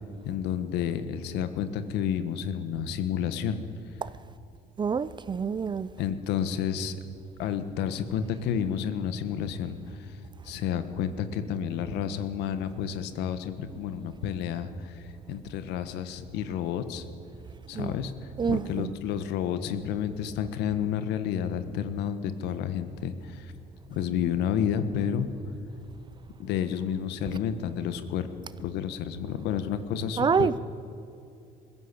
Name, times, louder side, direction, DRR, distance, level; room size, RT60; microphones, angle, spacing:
voice 1, 0.3-3.6 6.0-7.0 7.4-10.1 10.4-17.0 17.7-18.1 18.5-23.5 23.9-25.3 26.4-28.3 28.6-30.6, left 8 dB, 85° left, 1.4 m, -30 dB
voice 2, 4.8-5.9 17.7-17.9 18.4-19.0 30.2-30.6, right 6 dB, 25° right, 0.5 m, -27 dB
21.0 x 15.0 x 8.5 m
cardioid pair, 110°, 17 cm